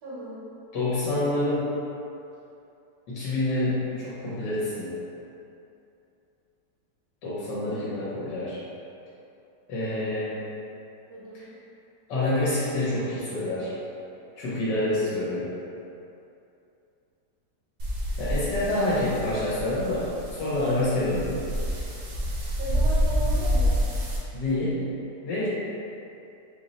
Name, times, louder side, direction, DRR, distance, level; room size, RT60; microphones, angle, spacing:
voice 1, 0.0-0.4 7.8-7.9 10.3-10.4 11.1-11.6 22.6-23.8, equal, 80° right, -8 dB, 1.6 m, -36 dB
voice 2, 0.7-1.8 3.1-4.9 7.2-8.6 9.7-10.4 11.3-11.4 12.1-13.7 14.4-15.5 18.2-21.5 24.3-24.8 25.2-25.5, left 1 dB, 80° left, -9 dB, 1.4 m, -27 dB
sound 1, 17.8-24.2, equal, 65° right, 1.1 m, -28 dB
4.2 x 2.1 x 3.8 m, 2.7 s
omnidirectional pair, 1.8 m